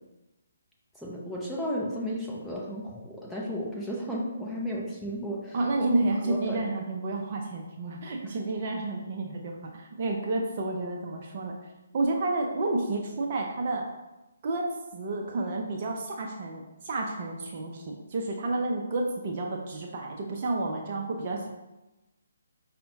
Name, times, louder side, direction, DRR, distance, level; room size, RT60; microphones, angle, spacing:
voice 1, 0.9-5.6 6.2-6.7 8.2-8.3, equal, ahead, -6 dB, 0.6 m, -34 dB
voice 2, 5.5-11.5 11.9-13.9 14.4-21.5, right 2 dB, 40° right, 0 dB, 0.5 m, -30 dB
5.3 x 2.1 x 2.7 m, 1.0 s
figure-of-eight pair, 140°, 0 cm